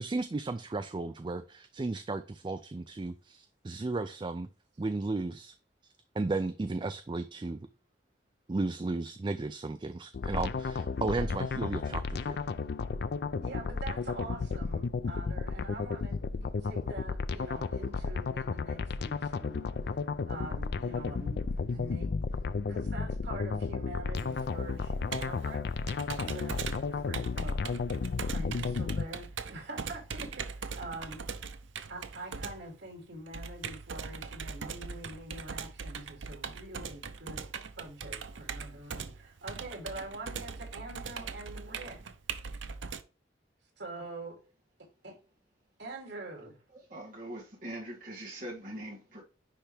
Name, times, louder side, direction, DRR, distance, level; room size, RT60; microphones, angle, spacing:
voice 1, 0.0-4.5 4.8-5.5 6.1-7.7 8.5-12.4, right 3 dB, 25° right, 0.4 m, -34 dB
sound 1, 10.1-29.1, left 4 dB, 60° left, 0.4 m, -33 dB
voice 2, 13.4-20.0 20.3-22.1 22.7-25.7 26.1-26.6 26.9-27.6 28.3-31.2 31.9-37.5 37.8-42.0 43.8-44.4 45.0-45.2 45.8-46.6, right 2 dB, 70° right, 2.9 m, -44 dB
Computer keyboard, 24.2-43.0, right 5 dB, 85° right, 0.7 m, -41 dB
voice 3, 46.9-49.2, right 1 dB, 45° right, 2.3 m, -42 dB
10.0 x 3.4 x 3.3 m
head